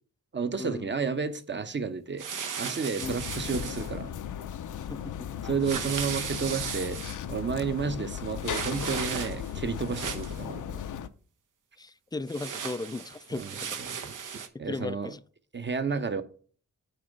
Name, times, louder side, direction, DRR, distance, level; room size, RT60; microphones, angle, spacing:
voice 1, 0.3-2.3 2.6-4.1 5.4-7.0 7.3-10.8 13.3-13.5 13.8-14.1 14.6-15.1 15.5-16.2, right 5 dB, 35° right, 0.8 m, -31 dB
sound 1, 2.2-3.9 5.6-7.2 8.4-9.5 9.8-10.4 12.3-14.5, right 6 dB, 75° right, 0.9 m, -36 dB
sound 2, 3.0-11.1, left 9 dB, 70° left, 0.5 m, -37 dB
voice 2, 4.9-5.3 11.8-13.8 14.5-15.2, left 3 dB, 15° left, 0.3 m, -36 dB
8.6 x 3.0 x 5.2 m
cardioid pair, 60°, 31 cm